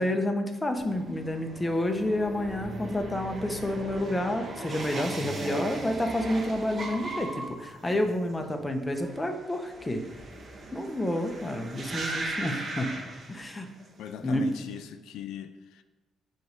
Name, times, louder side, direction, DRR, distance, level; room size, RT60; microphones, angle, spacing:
voice 1, 0.0-10.0 10.7-12.9 13.3-13.7 14.2-14.5, left 1 dB, 15° left, 4 dB, 0.9 m, -29 dB
sound 1, 0.8-13.9 14.2-14.7, right 2 dB, 45° right, 1.3 m, -38 dB
voice 2, 14.0-15.8, left 9 dB, 85° left, 9 dB, 0.3 m, -39 dB
7.7 x 3.2 x 5.2 m, 1.1 s
cardioid pair, 95°, 0 cm